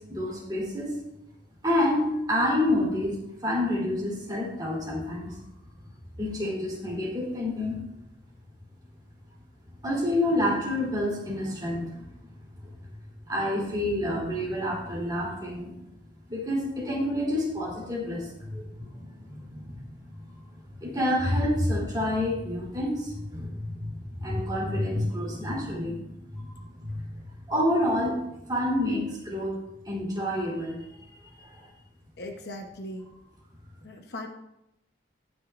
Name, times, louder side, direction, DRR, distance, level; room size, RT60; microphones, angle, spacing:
voice 1, 0.1-1.0 1.6-3.2 3.4-5.4 6.2-7.8 9.8-12.1 13.3-15.7 16.3-19.8 20.0-20.4 20.8-27.1 27.5-28.2 28.5-29.6 29.9-31.7, left 1 dB, 20° right, -5 dB, 3.5 m, -28 dB
voice 2, 32.2-33.1 33.8-34.3, left 1 dB, 55° left, 3 dB, 0.9 m, -38 dB
19.0 x 6.4 x 2.5 m, 0.87 s
head